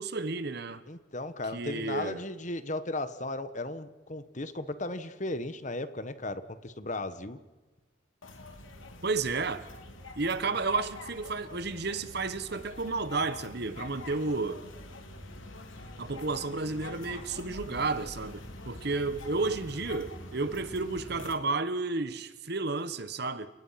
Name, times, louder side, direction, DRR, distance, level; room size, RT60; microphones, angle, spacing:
voice 1, 0.0-0.8 1.5-2.2 9.0-9.7 10.2-14.6 16.0-23.5, right 3 dB, 55° right, 13 dB, 1.2 m, -32 dB
voice 2, 0.9-7.4, left 2 dB, 35° left, 12 dB, 1.3 m, -36 dB
sound 1, 8.2-21.3, left 2 dB, 75° left, 3.3 m, -45 dB
30.0 x 18.5 x 5.8 m, 1.2 s
head